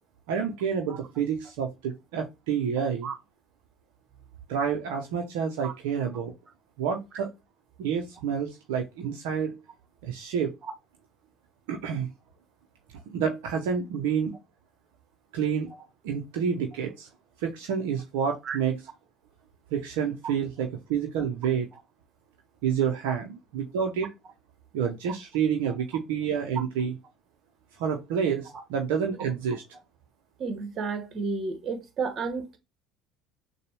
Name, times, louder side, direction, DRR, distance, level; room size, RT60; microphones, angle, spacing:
voice 1, 0.3-3.1 4.5-6.3 6.8-7.3 7.8-9.6 10.0-10.5 11.7-12.1 13.1-14.4 15.3-15.7 16.0-17.1 17.4-18.8 19.7-21.7 22.6-24.1 24.7-26.9 27.8-29.6, right 7 dB, 70° right, 0.8 m, -28 dB
voice 2, 30.4-32.6, right 4 dB, 45° right, 1.3 m, -32 dB
6.6 x 2.3 x 3.2 m
hypercardioid pair, 65°, 0 cm